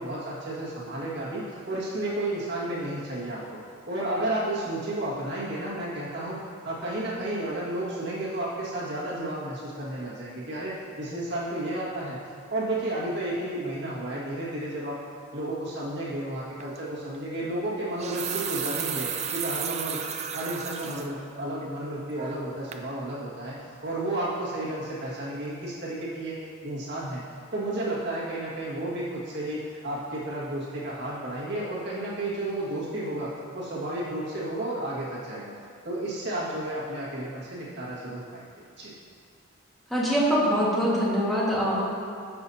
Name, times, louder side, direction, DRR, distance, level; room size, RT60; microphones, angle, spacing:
voice 1, 0.0-3.6 3.9-12.2 12.5-15.0 15.3-20.0 20.3-26.4 26.6-27.2 27.5-35.5 35.8-38.4 38.8-38.9, right 1 dB, 55° right, -7 dB, 1.8 m, -32 dB
sound 1, 16.6-16.8 17.8-21.1 21.5-21.6 22.2-22.5 22.7-22.9, right 7 dB, 30° right, 0.4 m, -33 dB
voice 2, 39.9-41.8, equal, ahead, -8 dB, 1.7 m, -23 dB
14.0 x 6.0 x 2.8 m, 2.3 s
head